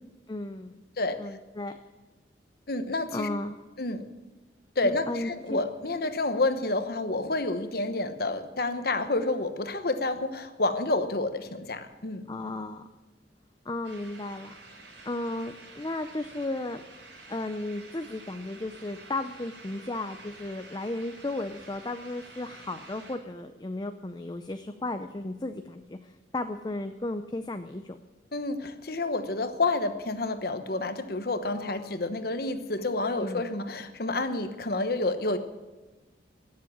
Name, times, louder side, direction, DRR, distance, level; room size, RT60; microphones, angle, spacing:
voice 1, 0.3-0.8 1.2-1.8 3.1-3.6 4.8-5.6 12.3-12.9 13.7-14.5 15.0-16.8 17.3-28.0 31.5-32.1 33.2-33.4, left 2 dB, 25° left, 8 dB, 0.5 m, -34 dB
voice 2, 2.7-3.3 3.8-4.1 4.8-12.2 28.3-35.4, left 2 dB, 55° left, 9 dB, 1.1 m, -29 dB
sound 1, 13.8-23.2, right 3 dB, 85° right, 4.9 m, -49 dB
17.5 x 7.5 x 8.6 m, 1.2 s
head